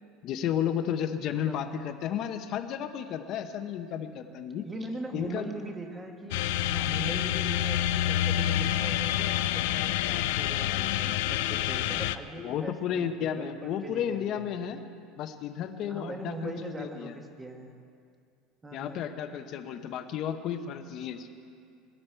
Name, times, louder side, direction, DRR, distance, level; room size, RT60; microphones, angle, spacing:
voice 1, 0.2-4.7 5.1-5.5 12.4-14.8 15.2-17.2 18.7-21.3, left 9 dB, 40° left, 8 dB, 0.8 m, -33 dB
voice 2, 1.3-1.6 4.6-14.5 15.9-17.7 18.6-19.1, right 2 dB, 10° right, 4 dB, 1.1 m, -41 dB
sound 1, 6.3-12.2, left 12 dB, 80° left, 0.4 m, -28 dB
21.0 x 12.5 x 4.5 m, 2.4 s
cardioid pair, 175°, 0 cm